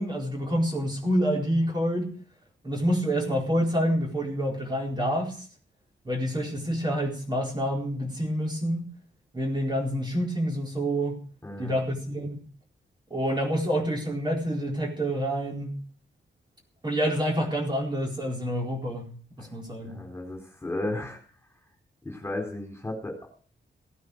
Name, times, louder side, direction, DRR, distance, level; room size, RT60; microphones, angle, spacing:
voice 1, 0.0-2.1 2.6-5.4 6.0-8.9 9.3-11.2 11.6-12.4 13.1-15.7 16.8-20.0, equal, 25° right, -1 dB, 4.3 m, -27 dB
voice 2, 11.4-11.8 19.4-19.5 19.8-21.2 22.0-23.3, left 1 dB, 15° left, 2 dB, 4.1 m, -34 dB
17.0 x 9.5 x 6.6 m, 0.41 s
wide cardioid pair, 175°, 19 cm